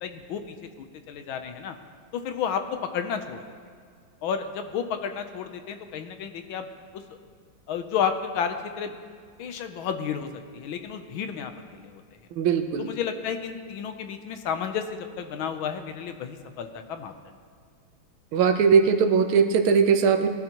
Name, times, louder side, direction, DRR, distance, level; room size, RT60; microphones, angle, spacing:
voice 1, 0.0-1.7 2.1-2.6 2.9-3.4 4.2-6.7 7.7-8.9 9.4-10.3 10.5-12.0 12.8-14.8 15.2-17.4, left 7 dB, 80° left, 7 dB, 1.6 m, -31 dB
voice 2, 12.4-12.9 18.3-20.3, right 6 dB, 90° right, 7 dB, 1.7 m, -20 dB
19.5 x 12.0 x 3.0 m, 2.1 s
omnidirectional pair, 2.2 m